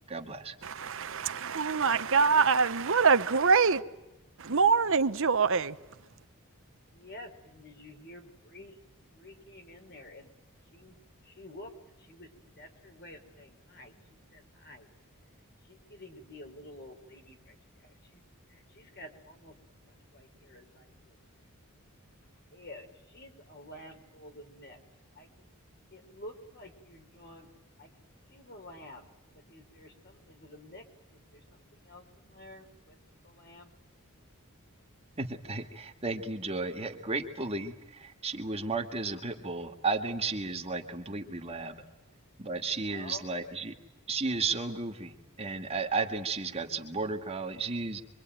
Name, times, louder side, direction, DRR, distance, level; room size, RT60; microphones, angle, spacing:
voice 1, 0.1-0.5 35.2-41.8 42.4-43.8 44.1-48.0, right 3 dB, 30° right, 2.1 m, -34 dB
voice 2, 0.6-3.8 4.4-5.8, right 5 dB, 65° right, 1.0 m, -24 dB
voice 3, 6.9-8.8 9.1-10.3 10.7-14.9 15.6-18.2 18.5-19.6 19.8-21.2 22.5-24.8 25.1-25.5 25.9-27.5 27.8-29.1 29.3-33.0 33.2-33.7 42.9-43.6, left 1 dB, 50° left, 4.3 m, -50 dB
26.0 x 24.0 x 9.2 m
head